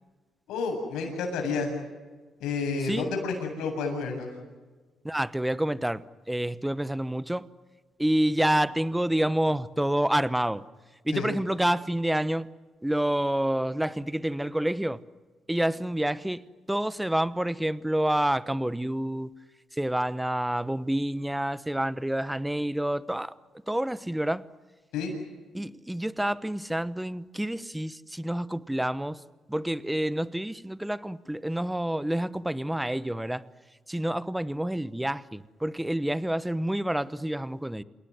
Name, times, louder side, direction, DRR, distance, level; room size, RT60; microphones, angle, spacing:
voice 1, 0.5-1.7 2.4-4.3 11.1-11.3 24.9-25.1, left 4 dB, 90° left, 3 dB, 7.8 m, -30 dB
voice 2, 5.0-7.5 8.0-10.6 11.0-12.5 12.8-15.0 15.5-16.4 16.7-19.3 19.8-23.3 23.7-24.4 25.5-29.2 29.5-33.4 33.9-37.8, right 1 dB, 5° right, 17 dB, 1.0 m, -28 dB
28.5 x 18.5 x 9.5 m, 1.3 s
cardioid pair, 90°, 0 cm